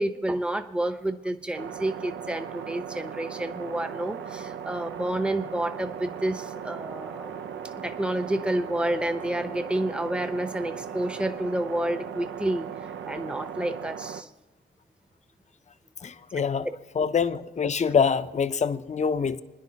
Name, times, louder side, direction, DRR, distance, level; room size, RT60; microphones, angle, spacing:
voice 1, 0.0-7.4 7.8-12.7 13.0-14.3, right 1 dB, 5° right, 0.9 m, -29 dB
sound 1, 1.6-14.2, right 8 dB, 70° right, 0.6 m, -38 dB
voice 2, 16.0-16.7 16.9-19.4, left 6 dB, 35° left, 0.6 m, -25 dB
28.5 x 10.0 x 2.9 m
cardioid pair, 65°, 20 cm